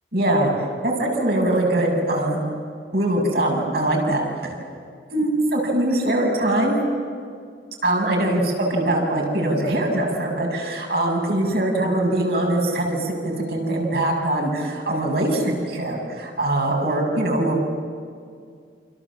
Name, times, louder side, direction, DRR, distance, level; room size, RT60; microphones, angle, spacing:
voice 1, 0.1-0.5 0.8-2.4 2.9-4.2 5.1-6.8 7.8-17.6, right 1 dB, 55° right, 0 dB, 7.4 m, -22 dB
28.5 x 27.5 x 7.5 m, 2.2 s
head